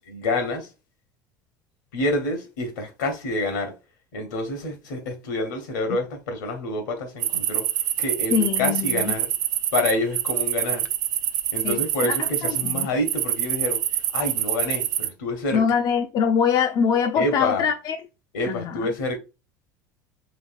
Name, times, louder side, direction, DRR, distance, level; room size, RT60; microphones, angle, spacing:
voice 1, 0.1-0.7 1.9-3.7 4.1-9.3 9.7-10.9 11.5-15.6 17.1-17.7 18.3-19.2, left 2 dB, 80° left, 1.1 m, -28 dB
sound 1, 7.2-15.1, right 11 dB, 75° right, 0.4 m, -25 dB
voice 2, 8.3-9.1 11.6-12.2 12.4-12.9 15.5-18.0 18.5-18.9, left 7 dB, 45° left, 0.5 m, -23 dB
4.1 x 3.2 x 2.5 m
hypercardioid pair, 70°, 10 cm